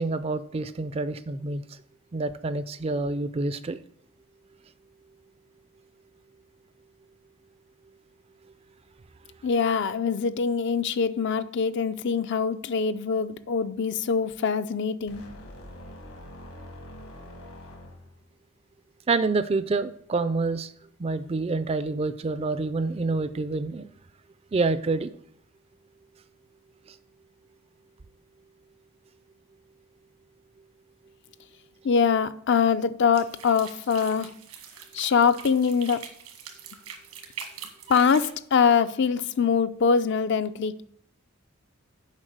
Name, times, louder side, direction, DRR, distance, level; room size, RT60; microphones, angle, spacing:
voice 1, 0.0-1.8 2.1-3.8 19.1-20.7 21.0-23.9 24.5-25.2 26.9-27.0, right 3 dB, 25° right, 0.3 m, -27 dB
voice 2, 9.4-15.3 31.8-34.3 34.9-36.0 37.9-40.8, left 6 dB, 55° left, 0.4 m, -23 dB
sound 1, 15.1-18.3, left 1 dB, 70° left, 1.6 m, -44 dB
sound 2, 33.1-38.3, right 7 dB, 85° right, 1.5 m, -43 dB
7.4 x 5.2 x 6.4 m
head